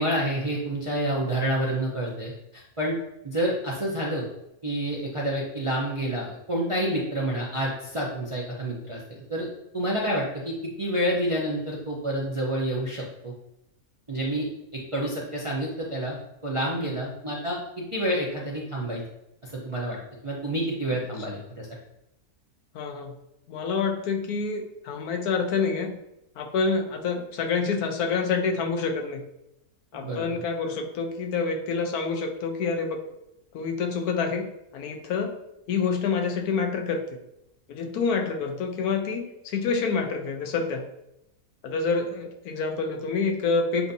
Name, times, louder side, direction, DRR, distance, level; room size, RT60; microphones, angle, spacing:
voice 1, 0.0-2.9 3.2-4.2 4.6-9.5 9.7-13.3 14.1-14.5 14.7-19.0 19.4-20.0 20.2-21.7 29.9-30.3, right 1 dB, 35° right, -4 dB, 0.5 m, -28 dB
voice 2, 22.7-23.2 23.5-26.0 26.4-29.3 29.9-33.0 33.5-35.3 35.7-37.0 37.7-40.9 41.6-43.9, left 4 dB, 75° left, 5 dB, 1.1 m, -27 dB
7.2 x 2.6 x 2.7 m, 0.83 s
omnidirectional pair, 1.6 m